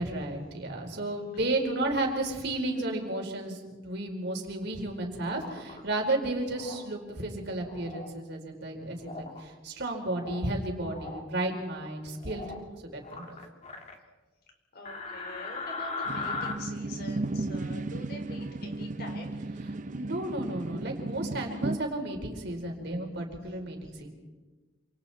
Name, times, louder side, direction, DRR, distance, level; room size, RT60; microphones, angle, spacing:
voice 1, 0.0-12.5 12.9-13.3 19.9-24.1, right 2 dB, 60° right, 2 dB, 4.4 m, -33 dB
sound 1, 5.2-5.8 6.5-6.8 7.6-8.1 9.0-9.4 9.9-10.5 10.8-11.2 12.2-12.6 13.0-14.0 14.9-16.5, left 3 dB, 35° left, 2.5 m, -38 dB
voice 2, 14.7-19.4 23.1-23.2 23.5-23.6, left 1 dB, 50° left, 3 dB, 4.5 m, -45 dB
sound 2, 16.1-21.8, right 2 dB, 40° right, 0.6 m, -35 dB
28.0 x 27.5 x 4.3 m, 1.3 s
head